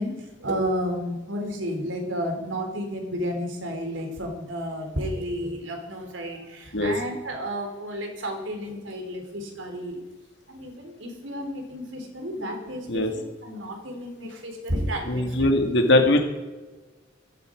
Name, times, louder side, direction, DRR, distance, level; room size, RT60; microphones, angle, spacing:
voice 1, 0.0-10.0 10.5-13.0 13.4-15.4, equal, 75° right, 3 dB, 3.8 m, -31 dB
voice 2, 15.1-16.2, left 1 dB, 65° left, 3 dB, 2.2 m, -20 dB
16.0 x 14.0 x 5.2 m, 1.2 s
head